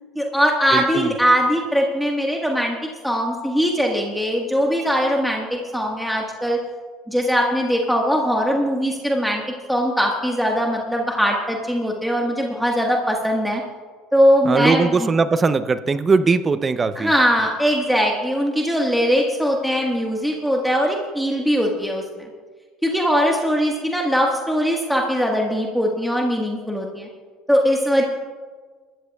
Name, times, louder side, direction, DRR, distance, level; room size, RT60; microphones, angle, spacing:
voice 1, 0.1-2.8 3.0-6.6 7.1-9.4 9.7-13.6 14.1-15.1 16.9-22.0 22.8-27.1 27.5-28.0, equal, ahead, -1 dB, 1.5 m, -20 dB
voice 2, 0.7-1.1 14.4-17.1, right 4 dB, 25° right, 12 dB, 0.6 m, -20 dB
21.0 x 13.5 x 2.3 m, 1.5 s
supercardioid pair, 100°, 0 cm